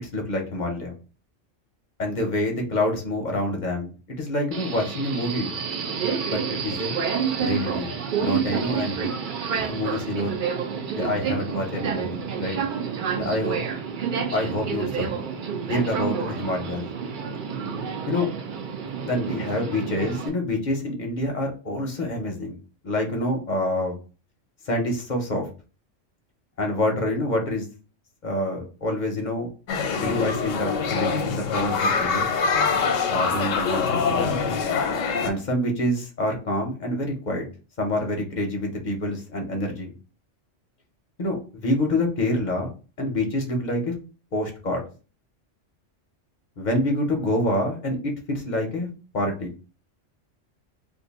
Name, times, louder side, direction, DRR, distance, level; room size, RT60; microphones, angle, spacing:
voice 1, 0.1-0.9 2.0-5.5 6.3-6.9 7.4-7.9 8.2-9.1 9.6-10.4 10.9-12.6 13.2-13.6 14.3-15.1 15.7-16.9 18.1-18.3 19.0-22.5 22.8-24.0 24.7-25.5 26.6-27.6 28.2-29.5 29.9-32.3 33.1-34.4 35.2-37.4 37.8-39.9 41.2-42.7 43.0-43.9 44.3-44.8 46.6-48.9 49.1-49.5, left 1 dB, 45° left, 2 dB, 0.6 m, -27 dB
Subway metro underground, 4.5-20.3, right 6 dB, 60° right, 0.5 m, -29 dB
sound 1, 29.7-35.3, left 5 dB, 85° left, 1.0 m, -24 dB
2.6 x 2.5 x 4.0 m, 0.36 s
omnidirectional pair, 1.3 m